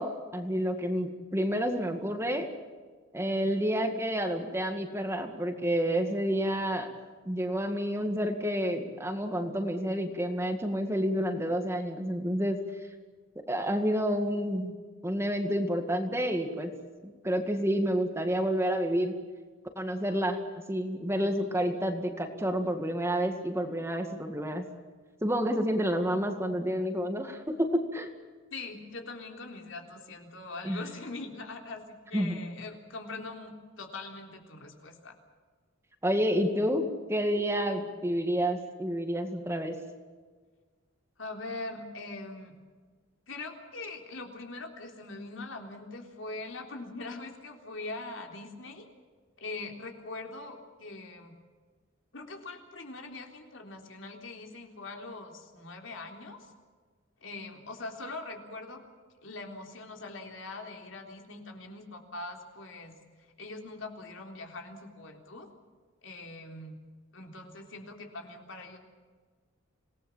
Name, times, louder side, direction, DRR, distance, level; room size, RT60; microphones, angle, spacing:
voice 1, 0.0-2.5 3.1-6.9 7.3-12.6 13.5-14.8 15.0-16.7 17.0-19.1 19.8-20.4 20.7-24.7 25.2-28.1 30.6-30.9 32.1-32.4 36.0-39.8, equal, 15° right, 5 dB, 2.1 m, -29 dB
voice 2, 28.5-35.2 41.2-42.5 43.3-48.9 49.4-51.3 52.1-56.5 57.2-58.8 59.2-65.5 66.0-66.8 67.1-68.8, left 3 dB, 75° left, 3 dB, 3.7 m, -42 dB
27.0 x 18.5 x 7.4 m, 1.5 s
head